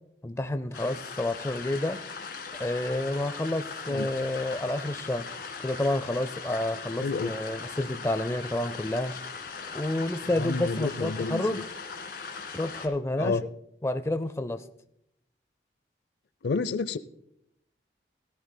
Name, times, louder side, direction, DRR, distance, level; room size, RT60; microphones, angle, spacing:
voice 1, 0.2-2.0 2.6-5.3 5.6-9.1 9.7-11.6 12.5-13.4 13.8-14.6, left 1 dB, 15° left, 11 dB, 0.4 m, -29 dB
sound 1, 0.7-12.9, left 5 dB, 60° left, 1.9 m, -39 dB
voice 2, 7.0-7.3 10.3-11.4 13.2-13.4 16.4-17.0, left 4 dB, 75° left, 16 dB, 0.5 m, -29 dB
17.5 x 13.0 x 2.2 m, 0.76 s
head